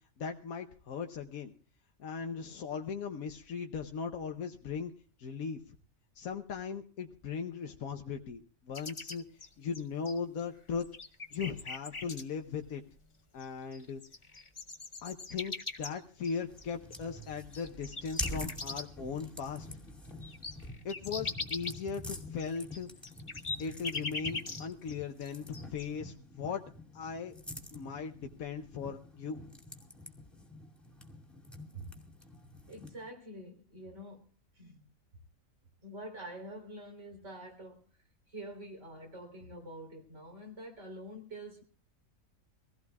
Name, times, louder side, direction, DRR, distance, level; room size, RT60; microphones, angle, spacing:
voice 1, 0.2-1.5 2.0-4.9 5.2-5.7 6.1-9.2 9.6-10.9 11.3-12.8 13.3-14.0 15.0-19.7 20.8-22.9 23.6-26.6 26.9-27.3 27.7-29.4, left 6 dB, 90° left, 1.4 m, -38 dB
sound 1, 8.7-10.4 10.8-12.2 13.4-13.5 13.7-19.1 19.5-19.6 19.9-24.9 25.2-25.9, left 3 dB, 25° left, 0.9 m, -41 dB
sound 2, 16.5-33.1, left 1 dB, ahead, 2.5 m, -46 dB
voice 2, 32.7-34.9 35.8-38.0 38.3-41.6, right 1 dB, 55° right, 4.0 m, -46 dB
24.5 x 16.5 x 2.3 m
omnidirectional pair, 1.4 m